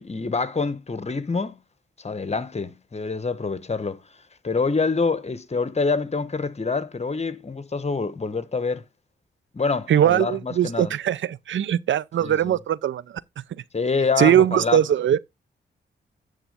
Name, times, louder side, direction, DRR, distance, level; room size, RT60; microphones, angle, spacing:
voice 1, 0.0-1.6 2.0-4.0 4.4-8.8 9.5-10.9 12.2-12.6 13.7-14.8, left 4 dB, 35° left, 1.1 m, -26 dB
voice 2, 9.9-13.2 14.2-15.2, right 10 dB, 75° right, 0.5 m, -20 dB
10.0 x 3.7 x 5.4 m
cardioid pair, 60°, 20 cm